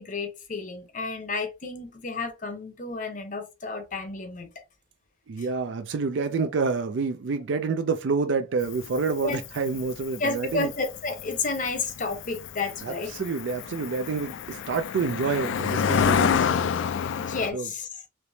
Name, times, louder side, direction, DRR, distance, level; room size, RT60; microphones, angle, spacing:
voice 1, 0.0-4.5 9.2-9.4 10.2-13.1 17.2-17.9, left 3 dB, 40° left, 0.7 m, -31 dB
voice 2, 5.3-10.7 12.8-16.7 17.5-17.7, right 4 dB, 70° right, 0.4 m, -28 dB
Cricket, 8.6-17.5, left 7 dB, 75° left, 0.3 m, -28 dB
3.3 x 2.9 x 2.7 m
head